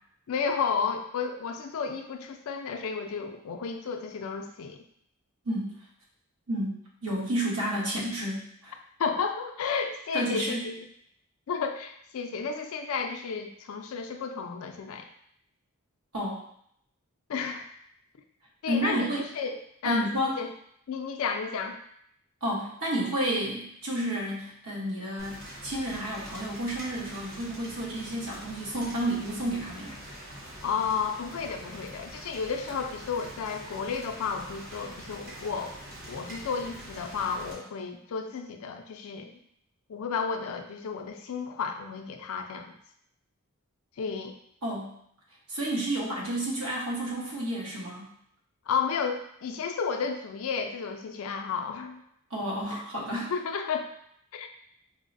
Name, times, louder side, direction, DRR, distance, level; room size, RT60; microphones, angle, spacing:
voice 1, 0.3-4.8 9.0-10.8 11.5-15.1 17.3-17.7 18.6-19.6 19.8-20.1 20.4-20.5 20.9-21.8 30.6-35.7 36.1-39.3 39.9-42.7 44.0-44.4 48.7-52.0 52.7-52.8 53.3-53.9 54.3-54.5, left 5 dB, 70° left, 4 dB, 0.4 m, -32 dB
voice 2, 5.4-5.8 6.5-8.7 10.1-10.6 16.1-16.4 18.7-19.3 19.8-20.3 22.4-30.0 44.6-45.0 45.5-48.1 52.3-53.3, right 1 dB, 70° right, -4 dB, 1.0 m, -31 dB
Rain, 25.2-37.5, equal, 45° right, 1.0 m, -44 dB
4.6 x 2.1 x 2.5 m, 0.70 s
head